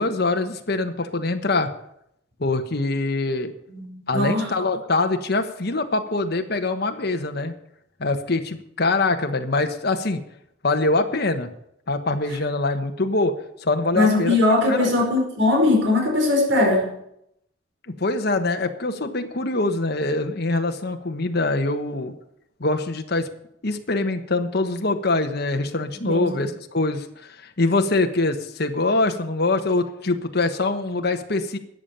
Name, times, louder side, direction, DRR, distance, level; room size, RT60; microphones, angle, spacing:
voice 1, 0.0-1.7 2.4-3.5 4.1-7.5 8.0-10.2 10.6-11.5 11.9-13.3 13.6-14.3 14.7-14.9 18.0-22.1 22.6-23.3 23.6-31.6, left 2 dB, 55° left, 6 dB, 1.2 m, -24 dB
voice 2, 3.7-4.5 13.9-16.9 26.0-26.4, left 2 dB, 75° right, 1 dB, 5.0 m, -20 dB
13.5 x 8.9 x 6.8 m, 0.74 s
head